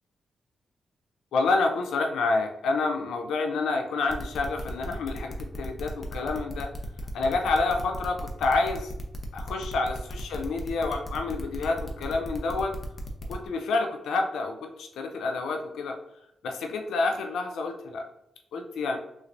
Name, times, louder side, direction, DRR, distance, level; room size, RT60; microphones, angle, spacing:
voice 1, 1.3-6.7 7.1-8.9 9.3-12.7 13.3-16.0 16.4-18.0 18.5-19.0, left 3 dB, 85° left, 3 dB, 0.5 m, -28 dB
sound 1, 4.1-13.5, left 3 dB, 35° left, 0.7 m, -39 dB
3.3 x 3.1 x 2.6 m, 0.82 s
cardioid pair, 60°, 0 cm